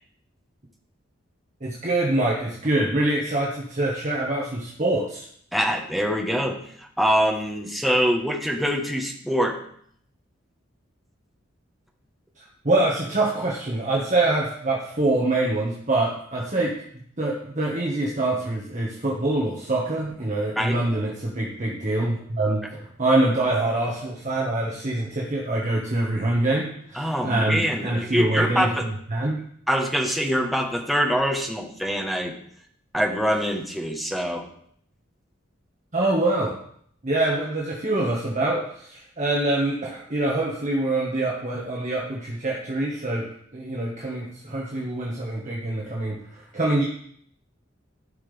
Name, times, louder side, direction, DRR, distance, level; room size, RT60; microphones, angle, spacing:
voice 1, 1.6-5.3 12.4-16.8 17.2-29.4 35.9-36.5 37.0-43.3 43.5-46.8, right 2 dB, 40° right, -4 dB, 1.5 m, -25 dB
voice 2, 5.5-9.6 20.6-20.8 26.9-28.9 29.7-32.4 32.9-34.5, equal, ahead, 2 dB, 1.2 m, -24 dB
14.5 x 5.8 x 3.4 m, 0.64 s
head